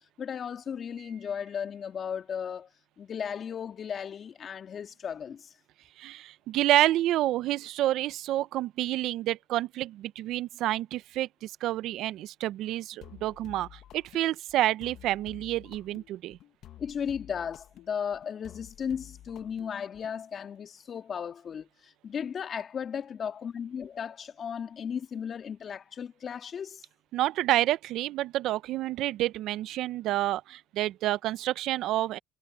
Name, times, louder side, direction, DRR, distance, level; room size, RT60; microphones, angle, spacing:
voice 1, 0.2-2.7 3.0-5.5 16.8-26.9, left 7 dB, 50° left, 2.4 m, -35 dB
voice 2, 6.0-16.4 27.1-32.2, right 14 dB, 70° right, 0.7 m, -29 dB
sound 1, 13.0-20.2, left 12 dB, 65° left, 1.3 m, -51 dB
supercardioid pair, 70°, 0 cm